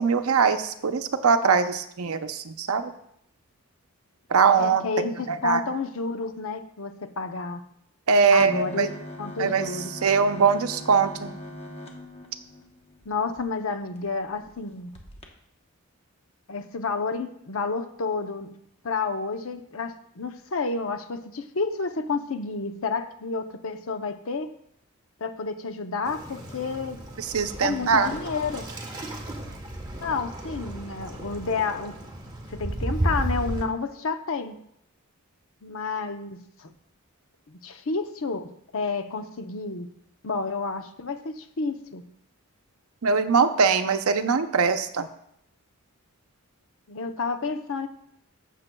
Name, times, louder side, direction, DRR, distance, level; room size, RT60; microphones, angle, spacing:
voice 1, 0.0-2.9 4.3-4.8 5.3-5.6 8.1-8.9 9.4-9.6 10.0-11.3 27.2-28.1 43.0-45.1, right 5 dB, 75° right, 9 dB, 0.6 m, -22 dB
voice 2, 4.6-7.6 8.3-9.9 13.1-14.9 16.5-18.5 18.8-24.5 25.2-27.0 27.6-28.7 30.0-32.0 32.5-34.6 35.6-36.7 37.5-39.9 40.2-42.0 46.9-47.9, left 4 dB, 65° left, 7 dB, 0.7 m, -30 dB
sound 1, 8.4-13.4 14.0-14.1 14.3-14.5 14.9-15.3, left 1 dB, 25° left, 1.0 m, -41 dB
Waves surf, 26.0-33.7, right 1 dB, 20° right, 1.1 m, -33 dB
15.0 x 6.7 x 2.3 m, 0.74 s
head